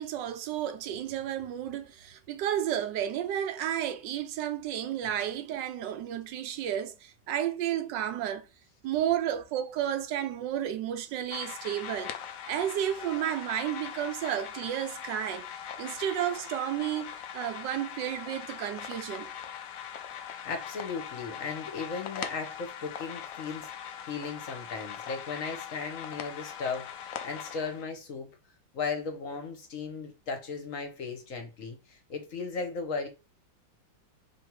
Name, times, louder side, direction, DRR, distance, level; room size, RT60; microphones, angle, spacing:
voice 1, 0.0-8.5 8.8-12.1 12.5-15.4 15.8-19.3, right 10 dB, 80° right, 1.3 m, -32 dB
sound 1, 11.3-27.9, left 9 dB, 65° left, 0.8 m, -41 dB
voice 2, 20.3-28.3 28.7-33.1, left 4 dB, 50° left, 1.4 m, -36 dB
3.6 x 3.3 x 4.6 m
omnidirectional pair, 1.9 m